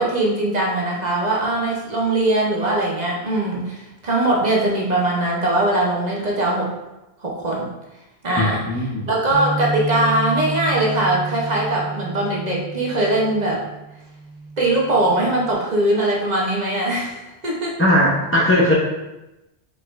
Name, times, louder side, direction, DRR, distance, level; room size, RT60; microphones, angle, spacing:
voice 1, 0.0-6.7 7.2-7.7 8.2-8.7 9.1-13.6 14.6-17.8, right 1 dB, 45° right, -3 dB, 0.9 m, -21 dB
voice 2, 8.4-9.1 17.8-18.7, left 1 dB, 15° left, -4 dB, 0.5 m, -18 dB
Bass guitar, 9.3-15.5, right 3 dB, 85° right, 1.7 m, -30 dB
4.8 x 4.0 x 2.5 m, 0.99 s
omnidirectional pair, 1.1 m